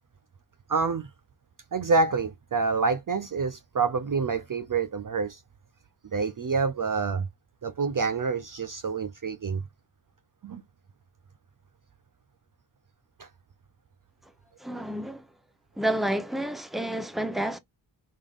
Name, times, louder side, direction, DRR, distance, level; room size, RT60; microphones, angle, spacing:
voice 1, 0.7-1.1 1.7-5.4 6.1-7.3 7.6-9.6 10.4-10.6 13.2-13.3, right 4 dB, 45° right, 0.5 m, -27 dB
voice 2, 14.6-15.2 15.8-17.6, right 1 dB, ahead, 0.8 m, -29 dB
5.3 x 3.6 x 2.4 m
wide cardioid pair, 60°, 47 cm